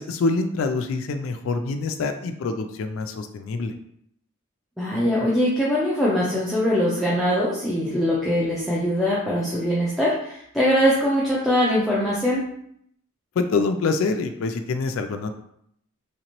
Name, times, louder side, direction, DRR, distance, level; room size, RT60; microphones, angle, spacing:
voice 1, 0.0-3.7 13.4-15.3, left 3 dB, 65° left, 7 dB, 0.3 m, -25 dB
voice 2, 4.8-12.5, equal, ahead, -8 dB, 0.5 m, -22 dB
3.3 x 2.9 x 2.9 m, 0.72 s
head